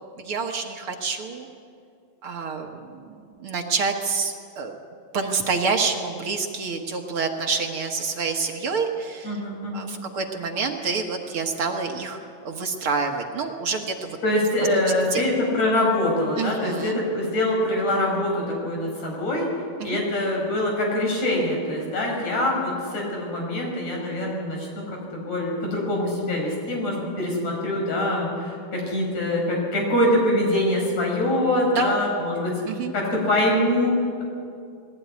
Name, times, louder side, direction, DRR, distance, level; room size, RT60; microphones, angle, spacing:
voice 1, 0.3-1.5 2.2-3.0 3.4-4.7 5.1-9.3 9.7-12.2 12.5-14.2 15.1-15.2 16.4-17.0 19.8-20.0 31.7-31.9 32.7-32.9, right 4 dB, 55° right, 2 dB, 1.8 m, -27 dB
voice 2, 9.2-9.9 14.2-19.5 19.8-32.6 32.9-34.2, left 1 dB, 55° left, -1 dB, 6.5 m, -24 dB
20.5 x 16.5 x 9.5 m, 2.4 s
omnidirectional pair, 3.7 m